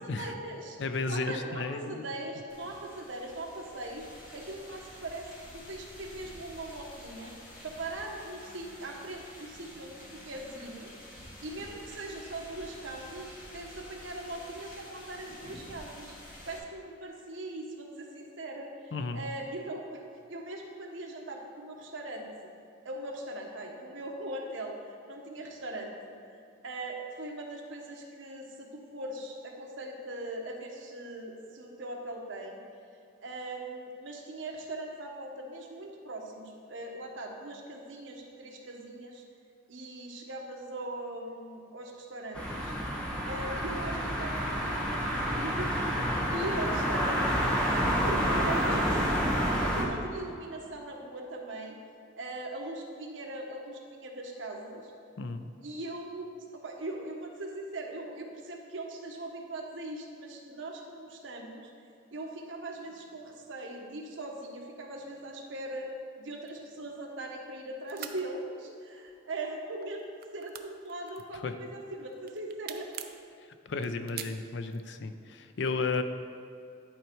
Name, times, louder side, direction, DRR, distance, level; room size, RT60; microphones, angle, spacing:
voice 1, 0.0-0.8 1.1-10.9 11.2-22.5 22.8-26.4 26.6-32.6 33.2-39.2 39.7-42.7 43.3-45.8 46.0-47.2 47.7-51.8 52.2-54.9 55.6-61.7 62.1-65.9 66.2-72.9, right 2 dB, 75° right, 1 dB, 1.1 m, -40 dB
voice 2, 0.8-2.0 18.9-19.2 55.2-55.5 71.4-71.5 73.7-76.0, left 3 dB, 65° left, 9 dB, 0.5 m, -33 dB
sound 1, 2.5-16.6, left 1 dB, 45° left, 1.8 m, -49 dB
sound 2, 42.3-49.8, equal, 5° left, 1.1 m, -29 dB
sound 3, 66.5-67.6 67.8-68.2 69.0-69.4 69.7-71.7 72.1-73.2 73.7-74.9, right 11 dB, 50° right, 0.4 m, -43 dB
11.0 x 4.4 x 4.6 m, 2.5 s
head